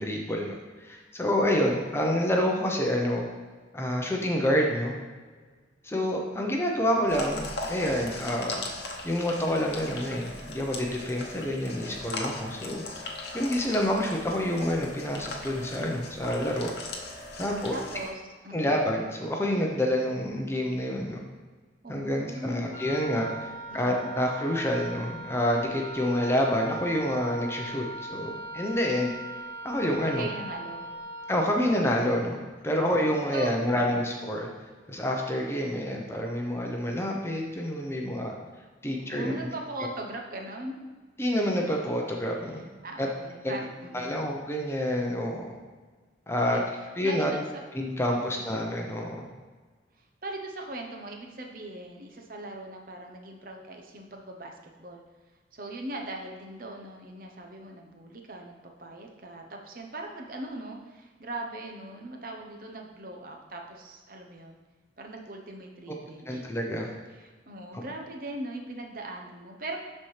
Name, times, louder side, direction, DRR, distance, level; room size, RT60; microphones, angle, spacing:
voice 1, 0.0-3.3 3.7-4.9 5.8-8.6 9.0-16.7 17.4-17.8 18.5-21.2 21.9-29.1 29.6-30.3 31.3-34.5 34.9-38.3 38.8-39.5 41.2-42.6 43.0-43.1 43.4-43.5 43.9-45.5 46.3-46.6 47.0-47.3 47.7-49.3 66.3-66.9, equal, 15° left, 0 dB, 0.7 m, -28 dB
sound 1, 7.1-18.1, left 2 dB, 60° left, 0.9 m, -39 dB
voice 2, 17.5-18.8 21.8-22.8 23.7-24.1 30.1-30.9 33.3-34.0 39.0-40.7 42.5-44.2 46.4-46.7 47.0-47.6 48.1-48.5 50.0-55.0 55.5-64.6 65.0-66.4 67.1-69.8, right 1 dB, 50° right, 2 dB, 0.9 m, -40 dB
Wind instrument woodwind instrument, 22.7-31.6, right 1 dB, 35° left, 1.4 m, -39 dB
12.0 x 4.3 x 3.3 m, 1.4 s
head